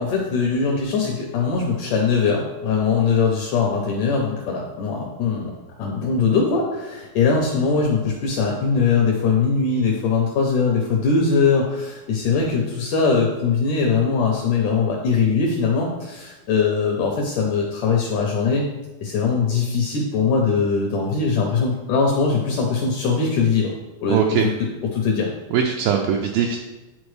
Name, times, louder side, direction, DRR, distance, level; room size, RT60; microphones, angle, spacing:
voice 1, 0.0-5.5 5.8-18.7 19.0-23.7 24.0-24.2 24.9-25.3, left 5 dB, 80° left, -1 dB, 1.8 m, -21 dB
voice 2, 24.1-24.5 25.5-26.6, right 7 dB, 80° right, 1 dB, 2.2 m, -20 dB
10.5 x 4.1 x 3.2 m, 1.1 s
omnidirectional pair, 4.5 m